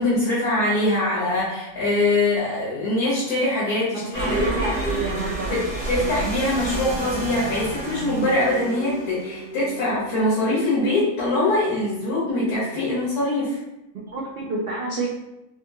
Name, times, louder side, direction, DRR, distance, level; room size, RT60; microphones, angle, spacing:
voice 1, 0.0-4.7 5.5-13.6, left 2 dB, 90° left, -8 dB, 1.4 m, -23 dB
voice 2, 3.9-5.6 13.9-15.1, right 2 dB, 70° right, -4 dB, 0.5 m, -28 dB
sound 1, 4.1-9.6, right 2 dB, 70° left, 1.6 m, -31 dB
sound 2, 4.1-13.1, right 2 dB, 90° right, 1.1 m, -37 dB
3.6 x 2.3 x 2.6 m, 0.95 s
omnidirectional pair, 1.5 m